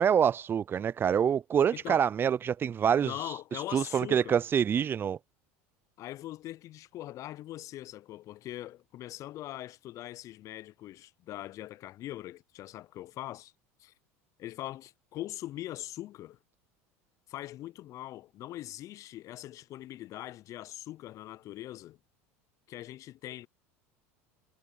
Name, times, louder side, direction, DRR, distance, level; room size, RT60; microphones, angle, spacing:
voice 1, 0.0-3.1 3.7-5.2, right 8 dB, 30° right, 0.5 m, -26 dB
voice 2, 1.7-2.1 3.0-4.4 6.0-13.5 13.8-13.9 14.4-16.4 17.3-22.0 22.7-23.5, left 14 dB, 45° left, 0.6 m, -42 dB
hypercardioid pair, 80°, 7 cm